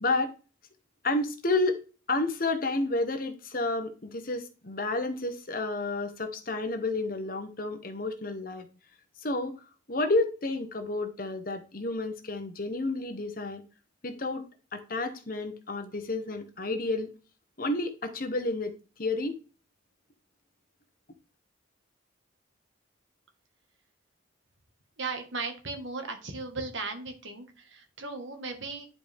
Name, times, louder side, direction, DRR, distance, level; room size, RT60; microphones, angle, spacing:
voice 1, 0.0-0.3 1.0-1.8 2.1-8.7 9.2-9.5 9.9-13.6 14.0-14.4 14.7-17.1 17.6-18.7 19.0-19.4, left 2 dB, 45° left, 1.1 m, -30 dB
voice 2, 25.0-28.9, right 3 dB, 70° right, 1.7 m, -36 dB
10.5 x 4.7 x 3.6 m
head